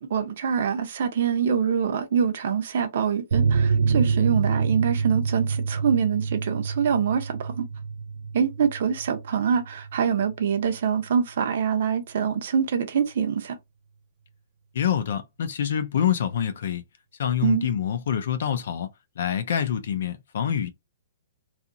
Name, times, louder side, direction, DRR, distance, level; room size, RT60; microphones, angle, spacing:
voice 1, 0.0-7.6 8.3-13.6 17.4-17.7, right 7 dB, 55° right, 0.7 m, -25 dB
sound 1, 3.3-10.4 10.7-10.8 11.1-11.2, right 5 dB, 90° right, 0.3 m, -27 dB
voice 2, 14.7-16.8 17.2-18.9 19.2-20.7, left 9 dB, 65° left, 0.4 m, -26 dB
2.8 x 2.4 x 2.5 m
hypercardioid pair, 170°, 0 cm